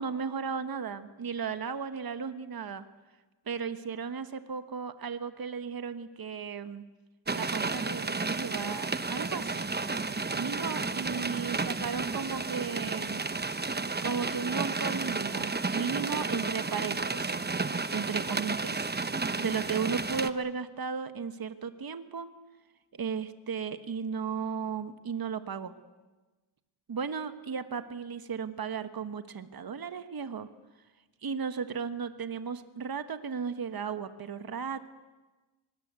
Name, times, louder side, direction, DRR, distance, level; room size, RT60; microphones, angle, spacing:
voice 1, 0.0-2.9 3.5-6.9 7.3-9.7 10.3-13.2 14.0-17.4 17.9-18.9 19.4-22.3 22.9-25.7 26.9-30.5 31.2-34.9, right 6 dB, 45° right, 10 dB, 1.4 m, -35 dB
sound 1, 7.3-20.3, right 3 dB, 20° right, 1.0 m, -32 dB
24.5 x 20.0 x 8.3 m, 1.2 s
cardioid pair, 80°, 50 cm